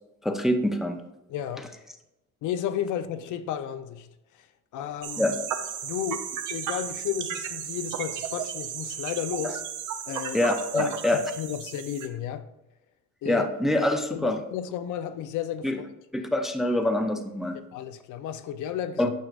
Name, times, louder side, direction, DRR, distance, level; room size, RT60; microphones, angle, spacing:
voice 1, 0.2-1.0 5.2-5.3 9.4-9.5 10.3-11.2 13.3-14.4 15.6-15.8 16.1-17.6 19.0-19.1, left 1 dB, ahead, 0.4 m, -25 dB
voice 2, 1.3-1.7 2.4-4.1 4.7-5.4 5.8-9.6 10.1-12.5 13.2-13.5 14.1-15.9 17.7-19.1, left 10 dB, 80° left, 0.6 m, -33 dB
sound 1, 5.0-12.1, right 8 dB, 85° right, 0.8 m, -34 dB
9.1 x 6.3 x 2.5 m
cardioid pair, 160°, 30 cm